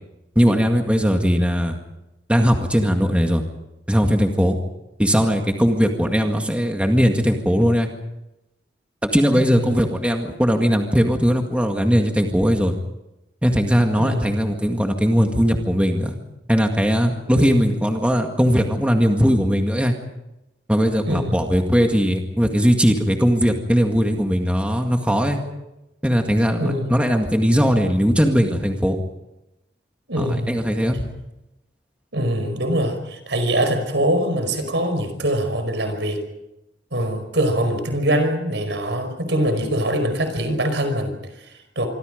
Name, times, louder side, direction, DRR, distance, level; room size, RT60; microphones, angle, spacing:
voice 1, 0.4-1.8 2.3-3.4 3.9-4.6 5.0-7.9 9.1-12.7 13.4-16.2 16.5-19.9 20.7-25.4 26.0-29.0 30.2-31.0, equal, 5° right, 3 dB, 1.9 m, -19 dB
voice 2, 9.3-9.8 13.9-14.4 17.3-17.7 21.1-21.4 26.6-27.0 30.1-30.6 32.1-36.2 36.9-41.9, right 1 dB, 75° right, 8 dB, 5.2 m, -23 dB
26.0 x 25.5 x 5.2 m, 0.91 s
head